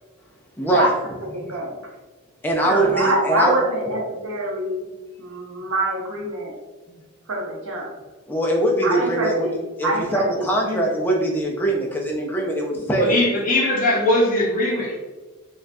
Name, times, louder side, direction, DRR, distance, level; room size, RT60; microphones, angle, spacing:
voice 1, 0.6-0.9 2.4-3.5 6.9-7.0 8.3-13.2, right 1 dB, 10° left, -1 dB, 0.4 m, -22 dB
voice 2, 1.3-1.7 2.6-4.9 5.2-6.5 7.3-7.9 8.8-9.6 9.8-10.9, right 1 dB, 65° right, -1 dB, 0.8 m, -25 dB
voice 3, 13.0-15.0, left 1 dB, 35° left, -3 dB, 0.8 m, -20 dB
4.3 x 2.4 x 2.6 m, 1.2 s
head